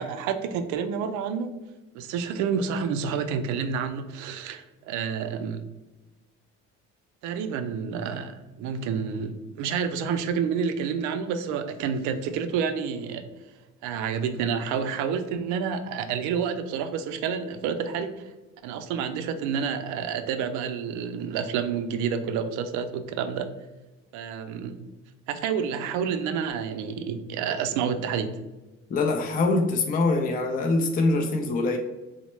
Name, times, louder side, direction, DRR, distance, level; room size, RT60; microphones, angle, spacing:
voice 1, 0.0-1.5 1.9-5.6 7.2-13.3 13.8-18.3 18.6-23.5 24.1-24.8 25.3-28.4, right 6 dB, 80° right, 9 dB, 0.5 m, -29 dB
voice 2, 28.9-31.8, left 3 dB, 30° left, 3 dB, 0.4 m, -24 dB
4.1 x 2.1 x 3.0 m, 1.1 s
cardioid pair, 115°, 29 cm